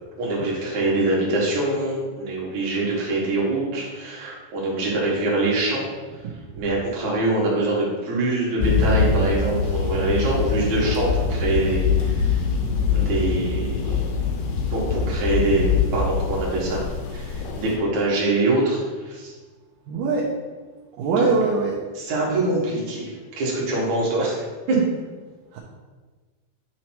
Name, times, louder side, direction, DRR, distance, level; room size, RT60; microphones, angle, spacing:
voice 1, 0.2-5.9 6.5-12.4 12.9-14.0 14.7-16.8 17.1-19.3 21.2-21.3 22.0-24.8, right 2 dB, 55° right, -5 dB, 2.5 m, -24 dB
sound 1, 8.6-17.8, left 5 dB, 80° left, 2.7 m, -23 dB
voice 2, 19.9-20.3 21.0-21.8 25.5-25.6, right 4 dB, 75° right, -4 dB, 2.1 m, -23 dB
9.4 x 3.2 x 4.4 m, 1.3 s
omnidirectional pair, 4.6 m